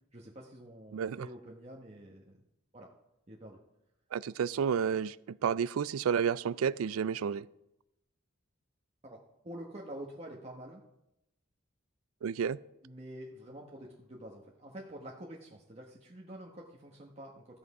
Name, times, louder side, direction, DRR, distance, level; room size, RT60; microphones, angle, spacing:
voice 1, 0.1-2.4 2.7-2.9 3.3-3.6 9.0-9.2 9.4-10.8 12.8-17.6, right 1 dB, 30° right, -2 dB, 1.1 m, -47 dB
voice 2, 0.9-1.3 4.1-7.5 12.2-12.6, right 7 dB, 90° right, 19 dB, 0.4 m, -31 dB
13.5 x 7.9 x 4.8 m, 0.87 s
head